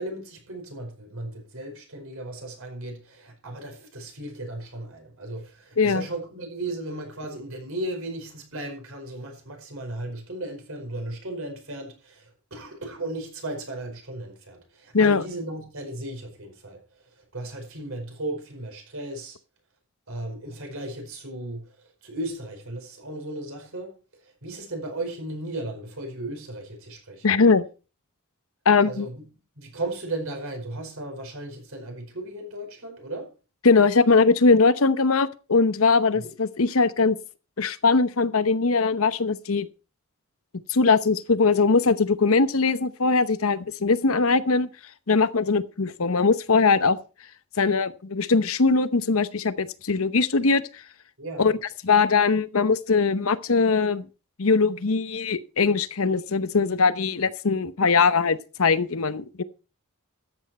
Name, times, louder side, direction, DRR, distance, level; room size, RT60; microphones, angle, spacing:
voice 1, 0.0-19.4 20.1-27.3 28.9-29.3 29.6-33.3 36.2-36.3 51.2-51.6, right 1 dB, 70° right, 4.9 m, -36 dB
voice 2, 27.2-27.6 28.7-29.1 33.6-37.2 37.6-39.7 40.7-44.7 45.1-47.0 47.6-50.8 51.4-51.5 51.8-54.0 54.4-59.4, left 4 dB, 70° left, 0.9 m, -21 dB
13.5 x 9.0 x 4.3 m
head